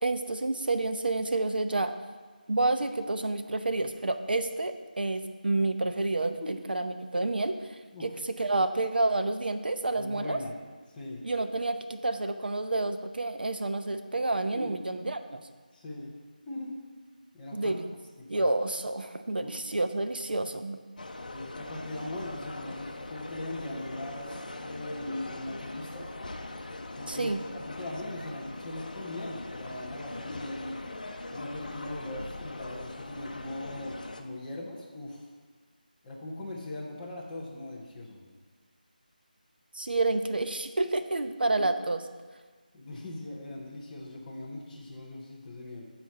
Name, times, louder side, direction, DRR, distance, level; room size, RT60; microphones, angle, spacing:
voice 1, 0.0-1.9 2.5-10.4 11.2-15.4 17.5-17.9 18.3-20.8 27.1-27.4 39.7-42.0, right 2 dB, 80° right, 8 dB, 0.8 m, -29 dB
voice 2, 10.0-10.5 10.9-11.2 14.5-14.7 15.7-16.1 16.5-16.7 17.3-17.8 18.2-18.5 19.4-19.5 21.2-26.1 26.9-30.8 31.3-35.3 36.0-38.2 42.7-45.9, left 1 dB, 5° left, -7 dB, 0.4 m, -40 dB
sound 1, 21.0-34.2, left 2 dB, 60° left, 0.7 m, -41 dB
8.8 x 4.4 x 6.9 m, 1.4 s
figure-of-eight pair, 180°, 5 cm